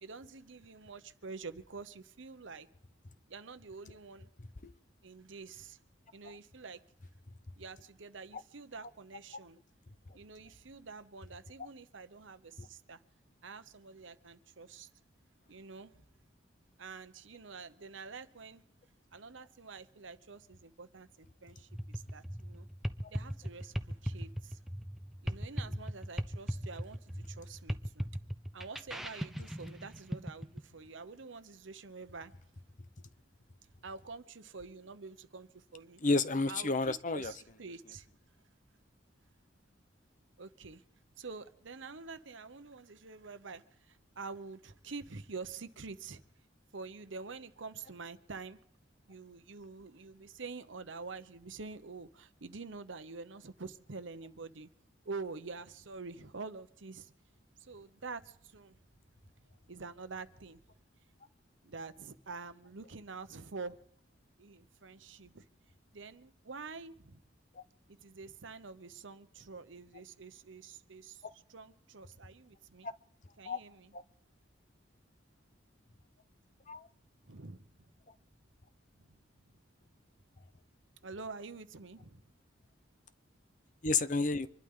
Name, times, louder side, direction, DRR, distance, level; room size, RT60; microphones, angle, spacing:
voice 1, 0.0-2.7 3.3-4.3 5.0-5.8 6.1-6.8 7.6-9.6 10.1-13.0 13.4-14.9 15.5-16.0 16.8-18.6 19.1-22.7 23.1-24.6 25.2-28.1 28.5-32.3 33.8-36.0 36.5-38.1 40.4-40.8 41.2-46.2 46.7-48.6 49.1-54.7 55.0-57.1 57.6-58.8 59.7-60.6 61.6-63.8 64.4-65.4 65.9-67.2 67.9-72.9 73.4-73.9 77.2-77.9 78.9-79.2 81.0-82.2, right 4 dB, 75° right, 1.0 m, -47 dB
sound 1, 21.7-30.6, equal, ahead, 0.7 m, -38 dB
voice 2, 36.0-37.3 72.8-72.9 73.4-73.6 73.9-74.0 76.7-76.9 83.8-84.5, left 3 dB, 40° left, 0.7 m, -30 dB
26.0 x 12.0 x 3.8 m
head